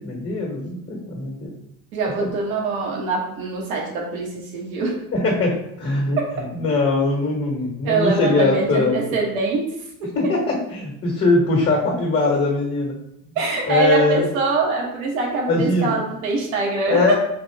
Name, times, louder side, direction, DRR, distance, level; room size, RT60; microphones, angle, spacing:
voice 1, 0.0-1.5 2.2-2.3 5.1-9.0 10.1-13.0 13.6-14.3 15.5-16.0 16.9-17.1, left 2 dB, 30° left, -1 dB, 1.4 m, -21 dB
voice 2, 1.9-5.0 6.2-6.3 7.8-9.6 10.0-10.1 13.3-17.1, right 3 dB, 75° right, -1 dB, 1.4 m, -23 dB
4.1 x 2.5 x 3.4 m, 0.78 s
hypercardioid pair, 85°, 42 cm